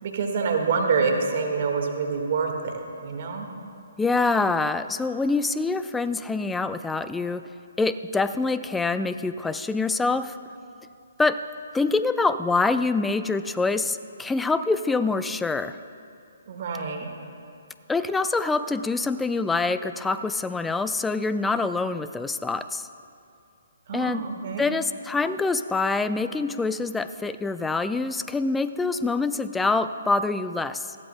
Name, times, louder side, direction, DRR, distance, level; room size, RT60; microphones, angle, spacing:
voice 1, 0.0-3.5 16.5-17.1 23.9-24.6, right 5 dB, 50° right, 3 dB, 1.7 m, -26 dB
voice 2, 4.0-7.4 7.8-10.4 11.2-11.4 11.7-15.8 17.9-22.9 23.9-24.3 24.6-31.0, left 3 dB, 5° left, 12 dB, 0.3 m, -25 dB
20.0 x 14.5 x 2.2 m, 2.6 s
figure-of-eight pair, 135°, 0 cm